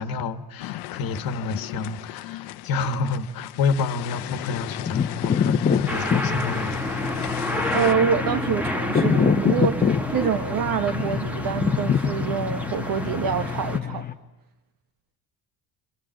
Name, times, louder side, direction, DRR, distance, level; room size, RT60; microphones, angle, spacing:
voice 1, 0.0-6.7, left 4 dB, 60° left, 10 dB, 1.6 m, -29 dB
sound 1, 0.6-7.9, left 16 dB, 80° left, 0.9 m, -36 dB
sound 2, 4.1-14.1, left 7 dB, 25° left, 1.1 m, -26 dB
sound 3, 5.9-13.8, equal, 5° right, 1.4 m, -30 dB
voice 2, 7.7-14.1, right 7 dB, 55° right, 6 dB, 1.3 m, -26 dB
29.0 x 25.0 x 7.7 m, 1.0 s
cardioid pair, 145°, 40 cm